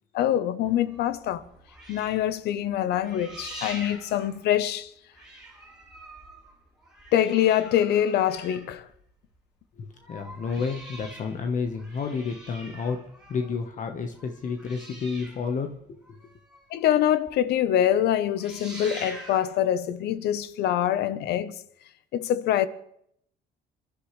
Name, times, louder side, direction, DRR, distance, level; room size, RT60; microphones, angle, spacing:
voice 1, 0.1-1.4 1.9-4.9 7.1-8.9 16.7-21.6 22.1-22.7, left 11 dB, 75° left, 1.0 m, -24 dB
sound 1, 0.7-4.9 5.1-9.4 9.8-16.9 17.3-17.4 17.7-18.0 18.2-19.6 20.4-20.5, right 1 dB, 5° right, 4.5 m, -45 dB
voice 2, 9.8-13.0 13.3-16.3, left 5 dB, 50° left, 1.3 m, -31 dB
28.5 x 12.0 x 3.3 m
cardioid pair, 110°, 17 cm